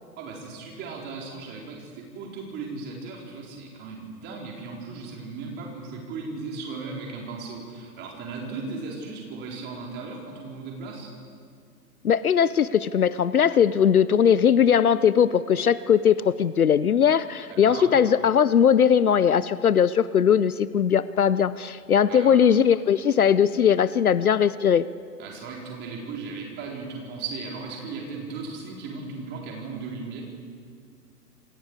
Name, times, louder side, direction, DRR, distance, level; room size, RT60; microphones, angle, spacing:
voice 1, 0.2-11.1 17.5-17.9 22.1-22.4 25.2-30.2, right 4 dB, 20° right, -1 dB, 4.3 m, -36 dB
voice 2, 12.0-24.8, left 8 dB, 60° left, 17 dB, 0.7 m, -20 dB
28.0 x 24.0 x 4.9 m, 2.2 s
figure-of-eight pair, 125°, 48 cm